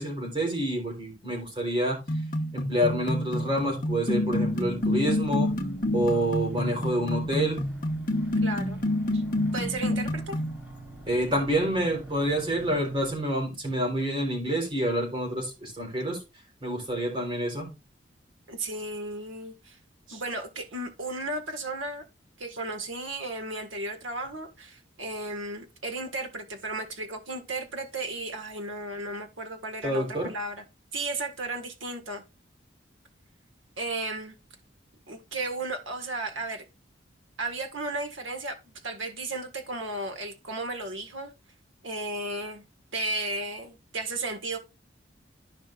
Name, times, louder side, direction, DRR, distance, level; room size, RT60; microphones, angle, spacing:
voice 1, 0.0-2.0 2.5-5.5 5.9-7.6 11.1-16.2 16.6-17.7 29.8-30.3, right 1 dB, 25° right, 3.8 m, -28 dB
sound 1, 2.1-10.6, left 1 dB, 45° left, 1.1 m, -28 dB
sound 2, 3.9-13.2, right 2 dB, 10° right, 3.7 m, -44 dB
voice 2, 8.4-8.8 9.1-9.2 9.5-10.4 18.5-19.8 20.1-22.0 22.4-30.6 30.9-32.2 33.8-34.4 35.1-36.6 37.4-41.3 41.8-42.6 42.9-44.6, right 2 dB, 85° right, 1.7 m, -34 dB
14.5 x 5.2 x 2.5 m
head